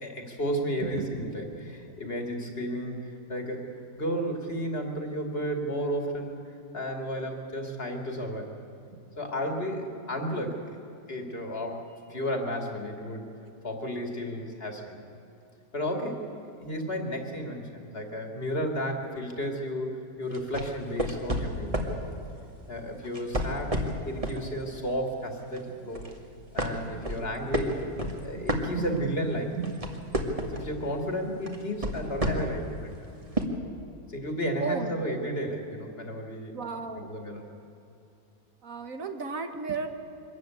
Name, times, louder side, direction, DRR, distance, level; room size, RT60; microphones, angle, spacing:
voice 1, 0.0-3.7 3.9-6.4 6.7-8.5 9.2-10.8 11.1-11.8 12.1-13.3 13.6-15.0 15.7-16.3 16.6-22.0 22.7-23.7 24.0-26.0 26.5-27.8 28.2-29.5 30.5-32.9 34.1-36.6 37.1-37.4, equal, 40° left, 3 dB, 2.5 m, -33 dB
voice 2, 0.8-1.8 8.9-9.1 17.2-17.3 25.7-25.9 26.7-27.1 28.0-29.2 29.5-30.0 34.6-35.1 36.5-37.2 38.6-39.9, right 5 dB, 70° right, 6 dB, 1.7 m, -36 dB
sound 1, 20.3-22.0 23.0-24.4 24.9-25.1 25.5-26.2 26.6-29.2 29.5-30.7 31.5-32.6 33.4-33.5, equal, 25° right, 1.8 m, -30 dB
24.0 x 13.5 x 9.3 m, 2.8 s
omnidirectional pair, 1.5 m